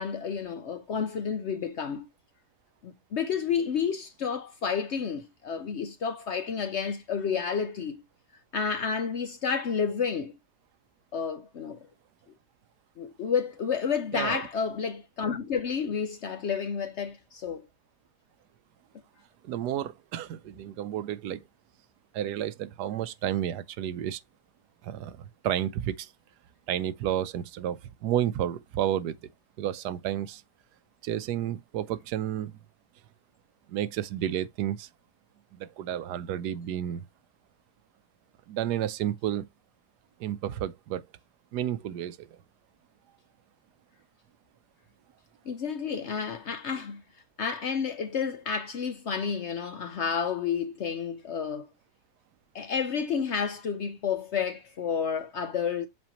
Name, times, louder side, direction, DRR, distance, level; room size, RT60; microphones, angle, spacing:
voice 1, 0.0-2.1 2.8-8.0 8.5-10.3 11.1-11.9 13.0-17.6 45.5-47.0 47.4-51.7 52.5-55.9, left 6 dB, 60° left, 0.7 m, -30 dB
voice 2, 19.4-21.4 22.1-24.2 24.8-26.1 26.7-29.2 29.6-30.4 31.0-32.6 33.7-34.9 35.5-37.0 38.5-39.5 40.2-41.0 41.5-42.4, right 11 dB, 85° right, 1.2 m, -31 dB
7.5 x 4.3 x 2.9 m
omnidirectional pair, 1.7 m